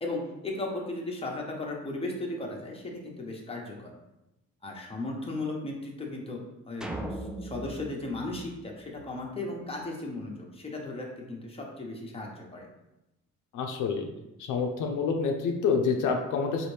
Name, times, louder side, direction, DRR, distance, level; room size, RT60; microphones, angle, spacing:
voice 1, 0.0-3.9 4.6-12.7, left 2 dB, 20° left, -1 dB, 0.9 m, -36 dB
sound 1, 6.8-9.3, right 1 dB, ahead, 0.3 m, -39 dB
voice 2, 13.5-14.1 14.5-16.7, left 5 dB, 80° left, 3 dB, 0.6 m, -27 dB
4.1 x 2.6 x 3.3 m, 0.94 s
cardioid pair, 90°, 30 cm